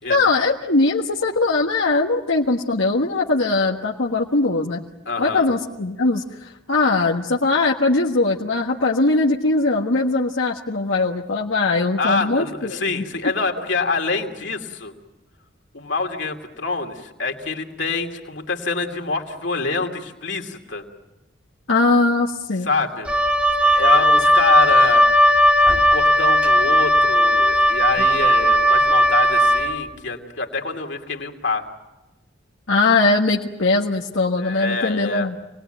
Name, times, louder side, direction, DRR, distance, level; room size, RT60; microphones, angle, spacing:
voice 1, 0.1-4.8 5.2-13.0 21.7-22.7 23.7-24.0 32.7-35.4, left 3 dB, 85° left, -2 dB, 1.5 m, -20 dB
voice 2, 5.1-5.5 12.0-14.9 15.7-20.8 22.6-23.1 23.6-25.0 25.9-31.7 34.4-35.3, left 3 dB, 65° left, 3 dB, 2.7 m, -26 dB
Wind instrument woodwind instrument, 23.1-29.8, equal, 5° right, 1.5 m, -16 dB
27.5 x 20.0 x 9.1 m, 1.1 s
head